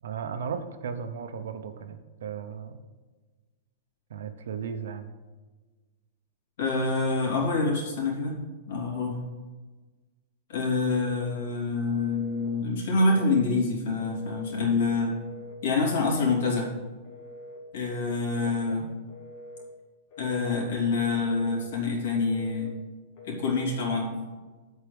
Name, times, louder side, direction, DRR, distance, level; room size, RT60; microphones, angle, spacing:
voice 1, 0.0-2.8 4.1-5.1 18.7-18.9, right 7 dB, 80° right, 9 dB, 0.9 m, -36 dB
voice 2, 6.6-8.4 8.7-9.2 10.5-15.1 15.6-16.7 17.7-18.9 20.2-22.7 23.2-24.1, left 3 dB, 65° left, -3 dB, 3.2 m, -26 dB
Telephone, 10.9-11.5 11.9-12.5 13.0-13.5 14.0-14.6 15.0-15.6 16.0-16.6 17.0-17.6 18.1-18.6 19.1-19.7 20.1-20.7 21.1-21.7 22.1-22.7 23.1-23.7, left 1 dB, 40° left, 1.6 m, -45 dB
8.2 x 4.6 x 6.9 m, 1.3 s
supercardioid pair, 165°, 0 cm